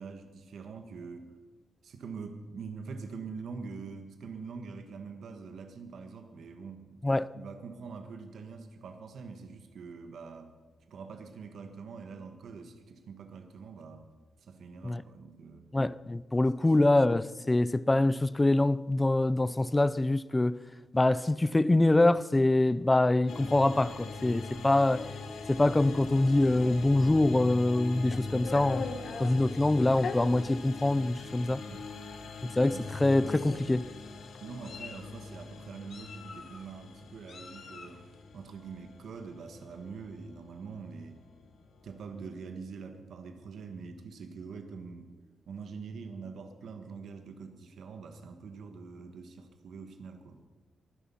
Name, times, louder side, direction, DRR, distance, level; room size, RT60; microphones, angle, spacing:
voice 1, 0.0-1.3 1.8-7.0 7.3-10.5 10.9-14.1 14.4-15.7 16.6-16.7 31.7-31.9 32.7-33.0 34.4-38.0 38.3-41.2 41.8-45.1 45.5-50.4, right 5 dB, 65° right, 1.4 m, -44 dB
voice 2, 15.7-20.6 20.9-25.1 25.5-28.9 29.2-31.6 32.4-33.8, left 2 dB, 15° left, 0.4 m, -25 dB
sound 1, 23.3-42.4, left 4 dB, 75° left, 2.0 m, -43 dB
Meow, 27.7-29.3 30.0-30.2 31.0-31.1 31.5-31.7 32.7-32.9 33.2-33.8 34.4-35.1 35.9-36.6 37.3-38.0, left 5 dB, 55° left, 1.7 m, -40 dB
23.5 x 10.5 x 5.6 m
wide cardioid pair, 165°, 0 cm